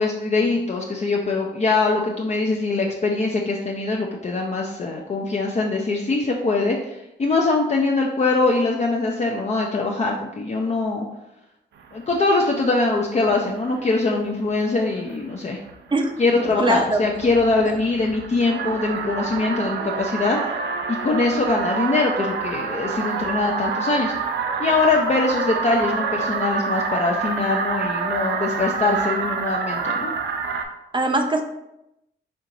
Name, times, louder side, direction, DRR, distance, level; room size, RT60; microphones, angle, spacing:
voice 1, 0.0-11.0 11.9-15.6 16.2-20.4 20.9-24.1 24.6-30.1, left 3 dB, 40° left, 0 dB, 0.5 m, -22 dB
sound 1, 11.9-12.9 13.1-13.9 14.5-14.6 14.9-15.2 15.5-30.7, right 5 dB, 80° right, 0.4 m, -28 dB
voice 2, 15.9-17.0 17.6-17.8 30.9-31.4, right 2 dB, 25° right, 4 dB, 0.5 m, -22 dB
4.4 x 2.8 x 2.6 m, 0.88 s
cardioid pair, 60°, 19 cm